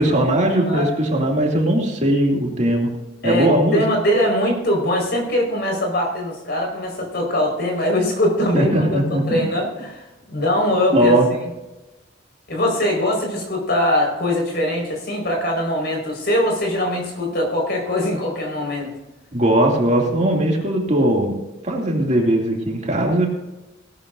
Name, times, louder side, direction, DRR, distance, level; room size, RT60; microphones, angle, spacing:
voice 1, 0.0-2.9 3.2-3.8 8.5-9.4 10.9-11.3 19.3-21.3 21.6-23.3, right 1 dB, 35° right, -1 dB, 2.7 m, -19 dB
voice 2, 3.2-11.2 12.5-18.9, left 1 dB, 55° left, 1 dB, 5.1 m, -22 dB
17.5 x 12.5 x 2.7 m, 1.0 s
head